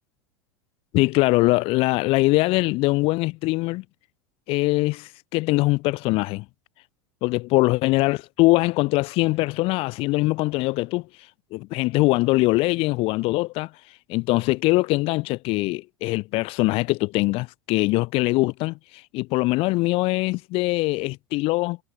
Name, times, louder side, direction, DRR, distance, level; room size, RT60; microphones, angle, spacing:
voice 1, 0.9-3.8 4.5-6.4 7.2-11.1 11.5-13.7 14.1-21.8, left 22 dB, 50° left, 0.9 m, -22 dB
hypercardioid pair, 85°, 12 cm